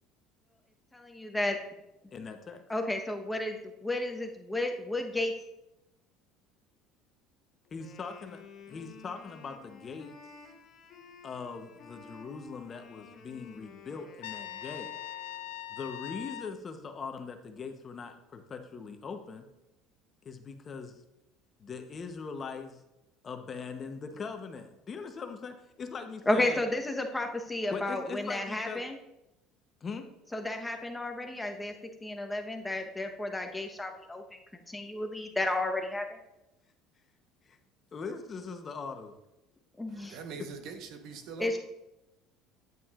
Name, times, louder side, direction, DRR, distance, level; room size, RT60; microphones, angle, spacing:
voice 1, 0.9-1.6 2.7-5.3 26.3-29.0 30.3-31.7 32.0-34.2 34.7-36.1 39.8-40.2 41.4-41.6, left 1 dB, 10° left, 1.0 m, -32 dB
voice 2, 2.1-2.6 7.7-8.4 8.7-10.2 11.2-15.0 15.7-19.5 20.2-20.9 21.6-22.8 23.2-26.6 27.7-28.8 29.8-30.0 37.4-37.6 37.9-39.2 40.4-40.5, left 5 dB, 35° left, 0.9 m, -41 dB
Wind instrument woodwind instrument, 7.6-15.8, left 5 dB, 50° left, 1.3 m, -53 dB
Trumpet, 14.2-16.5, left 12 dB, 85° left, 0.3 m, -41 dB
voice 3, 39.9-41.6, right 5 dB, 65° right, 1.1 m, -43 dB
9.1 x 8.3 x 2.5 m
supercardioid pair, 95°, 0 cm